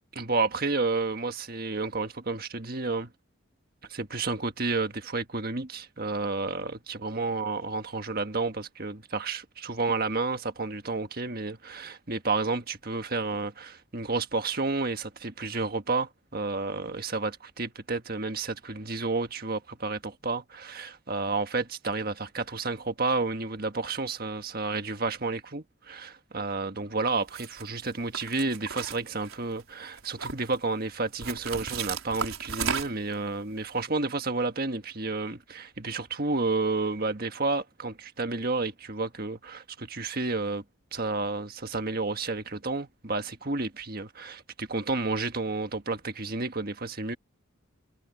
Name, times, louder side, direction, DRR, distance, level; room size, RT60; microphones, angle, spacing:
voice 1, 0.1-3.1 3.9-40.6 40.9-47.2, right 3 dB, 45° right, 1.6 m, -31 dB
sound 1, 27.3-27.6 28.1-29.6 30.0-30.6 31.2-33.1, right 6 dB, 75° right, 5.2 m, -34 dB
head